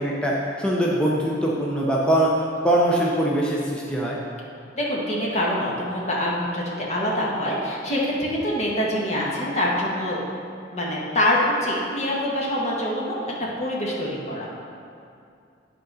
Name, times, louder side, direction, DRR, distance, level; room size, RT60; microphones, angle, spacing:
voice 1, 0.0-2.3 2.6-4.2, right 1 dB, 5° left, -4 dB, 0.7 m, -22 dB
voice 2, 4.7-10.2 10.7-13.1 13.6-14.5, left 1 dB, 35° left, -4 dB, 1.5 m, -25 dB
10.0 x 3.9 x 5.4 m, 2.5 s
head